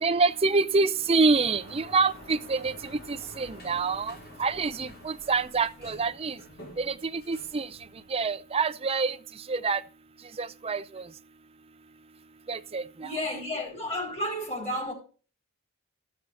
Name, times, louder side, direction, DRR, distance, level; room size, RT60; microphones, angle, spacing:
voice 1, 0.0-2.7 3.1-6.4 6.8-7.7 8.1-9.2 9.5-9.8 10.4-11.0 12.5-13.1, right 4 dB, 25° right, 0.5 m, -26 dB
Sliding door, 0.8-8.6, left 1 dB, 45° left, 2.2 m, -49 dB
voice 2, 13.0-14.9, left 1 dB, 30° left, 4.1 m, -32 dB
13.5 x 6.3 x 4.2 m
head